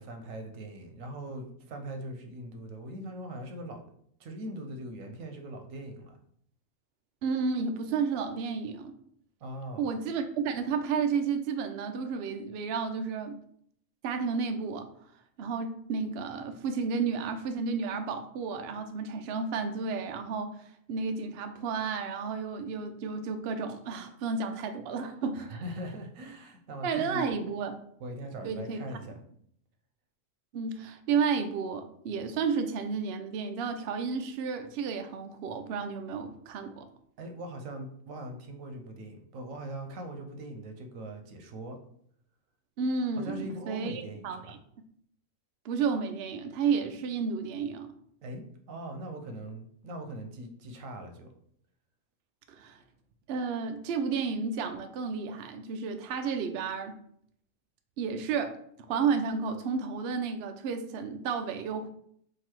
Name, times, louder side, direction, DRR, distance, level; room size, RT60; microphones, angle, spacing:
voice 1, 0.0-3.8 4.2-6.2 9.4-9.9 25.3-27.3 28.0-29.2 37.2-41.8 43.2-44.6 48.2-51.3, right 1 dB, 90° right, 5 dB, 1.1 m, -41 dB
voice 2, 7.2-9.0 9.8-13.4 14.0-14.9 15.4-20.6 20.9-25.4 26.8-27.8 28.4-28.8 30.5-36.9 42.8-44.6 45.6-47.9 52.5-52.8 53.3-56.9 58.0-58.5 58.9-61.9, right 5 dB, 65° right, 7 dB, 0.7 m, -32 dB
3.9 x 2.7 x 4.4 m, 0.66 s
omnidirectional pair, 1.3 m